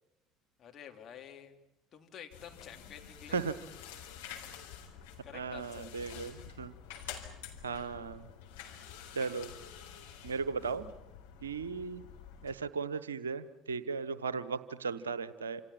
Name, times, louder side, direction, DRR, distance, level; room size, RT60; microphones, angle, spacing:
voice 1, 0.6-1.6 1.9-3.4 5.2-5.9 8.5-8.8 10.2-10.4, left 8 dB, 40° left, 3 dB, 3.4 m, -50 dB
sound 1, 2.3-12.5, left 8 dB, 70° left, 3.9 m, -49 dB
voice 2, 5.3-6.7 7.6-8.3 9.1-9.5 10.2-10.9 11.4-12.0 12.4-15.6, right 5 dB, 80° right, 16 dB, 1.1 m, -36 dB
28.5 x 27.5 x 5.9 m, 0.93 s
figure-of-eight pair, 60°, 0 cm